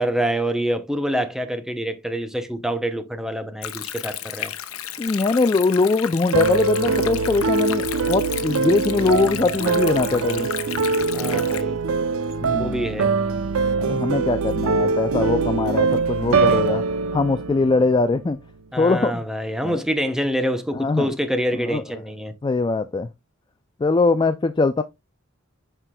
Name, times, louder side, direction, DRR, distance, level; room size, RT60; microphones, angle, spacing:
voice 1, 0.0-4.5 11.1-11.8 12.6-13.1 16.3-16.6 18.7-22.3, equal, ahead, 0.8 m, -26 dB
Stream, 3.6-11.6, left 10 dB, 90° left, 0.8 m, -33 dB
voice 2, 5.0-10.5 12.4-12.8 13.8-16.8 17.1-18.4 18.8-19.2 19.6-19.8 20.8-21.1 21.7-21.8 22.4-23.1 23.8-24.8, left 3 dB, 20° left, 0.3 m, -21 dB
sound 1, 6.3-18.5, right 4 dB, 85° right, 0.6 m, -23 dB
7.9 x 5.9 x 2.2 m
head